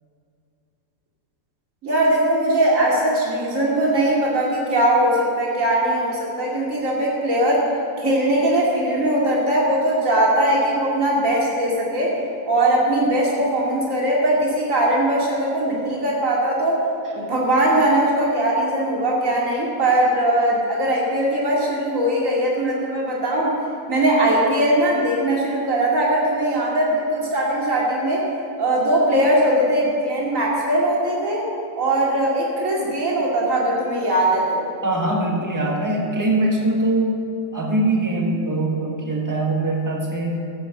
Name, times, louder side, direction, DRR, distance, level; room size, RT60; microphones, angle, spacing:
voice 1, 1.8-7.7 8.0-12.2 12.5-16.8 17.1-23.5 23.9-28.3 28.6-31.5 31.8-34.6, right 1 dB, 65° right, -4 dB, 2.8 m, -20 dB
voice 2, 34.8-37.1 37.5-40.4, right 2 dB, 15° right, -1 dB, 1.7 m, -22 dB
14.5 x 8.8 x 7.0 m, 2.6 s
omnidirectional pair, 1.5 m